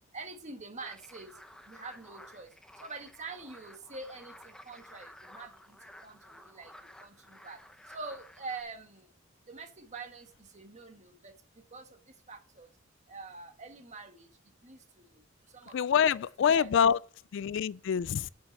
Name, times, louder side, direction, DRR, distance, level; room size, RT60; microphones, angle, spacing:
voice 1, 0.1-7.6 7.9-9.1 9.5-12.7 13.1-14.3 14.6-15.8 16.5-16.7, right 3 dB, 35° right, 1.5 m, -46 dB
sound 1, 0.8-8.6, left 1 dB, 5° left, 0.7 m, -53 dB
voice 2, 15.7-17.0 17.3-18.3, left 7 dB, 65° left, 0.3 m, -26 dB
8.5 x 6.7 x 5.5 m
head